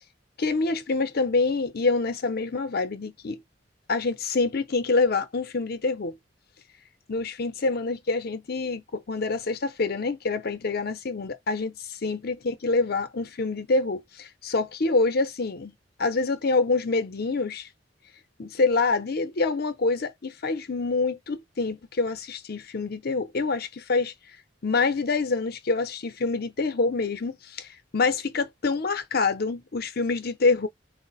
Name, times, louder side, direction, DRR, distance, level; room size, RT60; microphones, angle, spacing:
voice 1, 0.4-3.4 3.9-6.2 7.1-11.8 12.0-15.7 16.0-17.7 18.4-24.1 24.6-30.7, left 3 dB, 55° left, 0.6 m, -26 dB
4.7 x 2.1 x 4.0 m
head